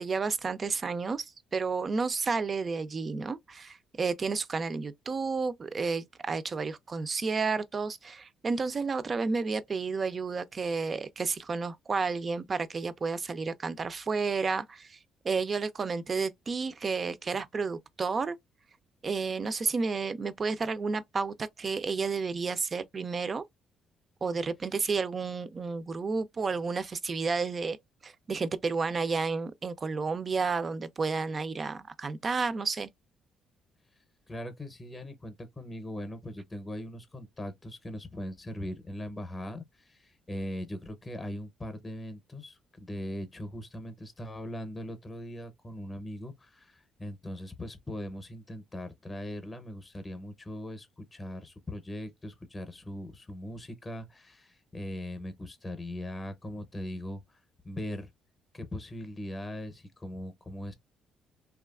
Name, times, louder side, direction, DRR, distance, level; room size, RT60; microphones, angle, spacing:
voice 1, 0.0-15.0 15.2-18.4 19.0-23.5 24.2-27.8 28.0-32.9, right 4 dB, 35° right, 0.4 m, -31 dB
voice 2, 34.3-58.1 58.5-60.7, equal, 20° left, 0.7 m, -40 dB
2.8 x 2.3 x 2.3 m
cardioid pair, 95°, 0 cm